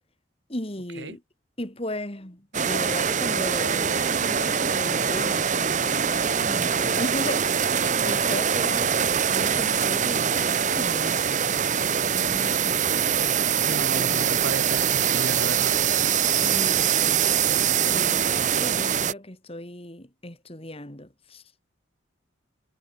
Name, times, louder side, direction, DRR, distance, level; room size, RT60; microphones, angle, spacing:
voice 1, 0.5-1.2 1.6-11.3 12.1-13.2 13.9-14.4 16.2-17.5 17.9-21.4, left 1 dB, 30° left, 3.0 m, -36 dB
sound 1, 2.5-19.1, right 8 dB, 40° right, 0.9 m, -23 dB
voice 2, 13.6-15.7, right 2 dB, 70° right, 2.7 m, -34 dB
head